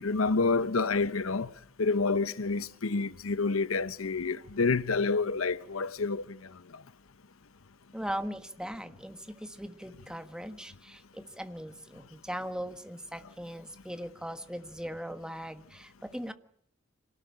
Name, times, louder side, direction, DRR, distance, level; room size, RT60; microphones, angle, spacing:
voice 1, 0.0-1.5 1.8-6.4, left 4 dB, 80° left, 0.9 m, -28 dB
voice 2, 7.9-16.3, equal, 5° right, 1.5 m, -39 dB
26.5 x 18.5 x 8.8 m
head